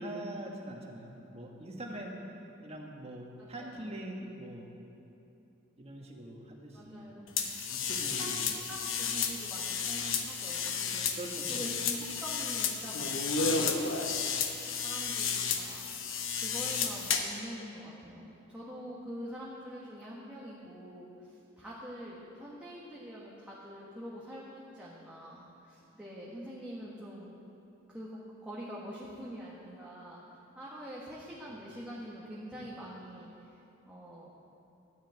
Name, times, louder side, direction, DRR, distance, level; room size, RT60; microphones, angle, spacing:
voice 1, 0.0-2.3 2.6-4.7 5.8-7.4 7.7-8.6 11.1-11.6 32.5-32.7, right 1 dB, 30° right, 0 dB, 1.5 m, -43 dB
voice 2, 3.4-3.9 6.7-7.3 8.0-11.1 11.5-13.9 14.8-16.0 16.4-27.3 27.9-30.2 30.5-33.5 33.9-34.3, equal, 5° right, -7 dB, 1.5 m, -45 dB
sound 1, 7.4-17.4, left 5 dB, 70° left, 1.0 m, -32 dB
12.5 x 6.5 x 9.2 m, 2.7 s
head